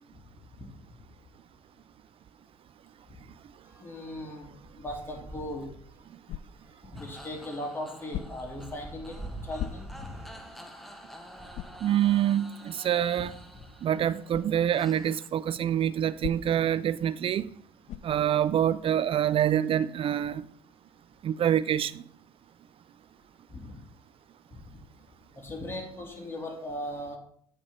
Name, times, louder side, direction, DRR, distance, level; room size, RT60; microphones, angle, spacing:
sound 1, 1.3-1.5 1.8-1.9 2.3-11.7 12.5-13.8 14.5-14.6 14.8-14.9 16.6-16.8 17.4-17.6 18.0-19.3, right 2 dB, 15° right, 1.6 m, -49 dB
voice 1, 3.8-4.5 4.8-5.7 6.9-10.2 23.5-23.8 24.5-24.6 25.3-27.2, left 1 dB, 15° left, 2.2 m, -38 dB
sound 2, 6.3-6.8 8.1-8.6 9.6-10.2 10.7-10.8 11.5-11.9 14.3-14.6 16.2-16.7 17.9-18.2, left 11 dB, 55° left, 0.4 m, -38 dB
sound 3, 7.0-15.3, equal, ahead, 0.9 m, -49 dB
voice 2, 11.8-13.3 13.8-17.5 18.0-20.4 21.2-22.0, right 10 dB, 45° right, 0.3 m, -26 dB
8.7 x 3.4 x 5.3 m
hypercardioid pair, 65°, 13 cm